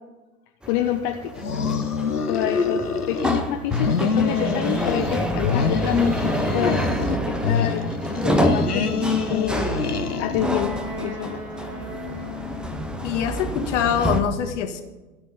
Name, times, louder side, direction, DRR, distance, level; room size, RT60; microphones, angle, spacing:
sound 1, 0.6-14.2, equal, ahead, 0.7 m, -28 dB
voice 1, 0.7-1.5 2.3-6.1 6.5-6.8 7.3-7.9 8.2-9.6 10.2-11.4, left 11 dB, 35° left, 4 dB, 0.8 m, -27 dB
sound 2, 1.3-3.4 3.7-5.2 5.4-7.2 7.4-10.6, left 5 dB, 85° left, 1.2 m, -25 dB
Wind instrument woodwind instrument, 9.0-13.3, left 4 dB, 75° right, 5.1 m, -37 dB
voice 2, 13.0-14.8, left 8 dB, 50° left, 7 dB, 1.6 m, -24 dB
14.0 x 6.1 x 8.2 m, 1.1 s
figure-of-eight pair, 100°, 45 cm